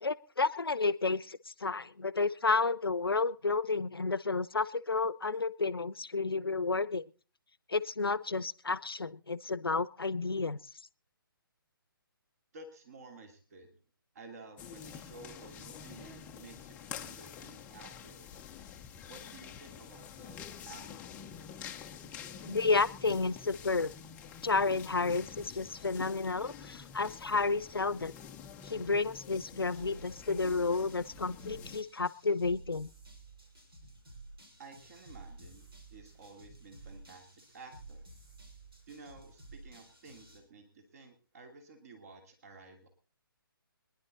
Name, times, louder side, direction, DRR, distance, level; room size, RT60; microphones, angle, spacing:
voice 1, 0.0-7.0 7.7-10.6 22.4-23.9 24.4-28.1 28.6-32.9, left 4 dB, 75° left, 17 dB, 0.7 m, -31 dB
voice 2, 12.5-13.8 14.1-18.6 19.1-21.2 34.6-38.0 38.9-42.9, right 3 dB, 40° right, 5 dB, 2.7 m, -53 dB
sound 1, 14.6-31.8, left 8 dB, 10° left, 0.6 m, -48 dB
sound 2, 29.7-40.4, right 2 dB, 80° right, 5.7 m, -53 dB
22.5 x 11.0 x 4.1 m, 0.38 s
figure-of-eight pair, 140°, 12 cm